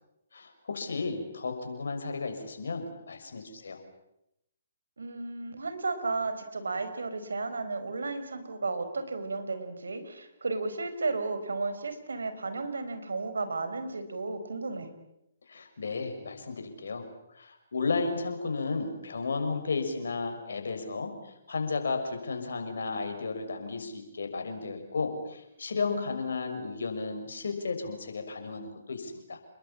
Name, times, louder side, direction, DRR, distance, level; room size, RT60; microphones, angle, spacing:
voice 1, 0.3-3.8 15.5-29.4, left 4 dB, 70° left, 6 dB, 6.4 m, -33 dB
voice 2, 5.0-14.9, right 3 dB, 80° right, 10 dB, 5.0 m, -33 dB
29.5 x 21.5 x 8.8 m, 0.84 s
figure-of-eight pair, 135°, 0 cm